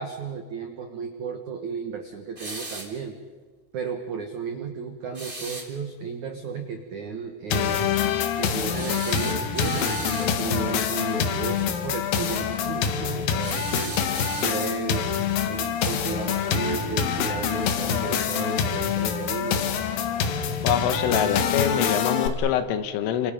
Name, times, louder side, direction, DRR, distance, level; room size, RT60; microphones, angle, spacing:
voice 1, 0.0-3.2 3.7-8.0 8.4-14.0 14.4-19.7, right 5 dB, 75° right, 5 dB, 1.8 m, -34 dB
sound 1, 2.3-3.0 5.1-5.7 8.7-10.4 13.4-14.8, right 2 dB, 20° right, 1.4 m, -36 dB
sound 2, 7.5-22.3, left 7 dB, 65° left, 2.5 m, -26 dB
voice 2, 20.6-23.3, left 9 dB, 80° left, 10 dB, 3.8 m, -25 dB
29.0 x 27.5 x 5.1 m, 1.5 s
omnidirectional pair, 5.7 m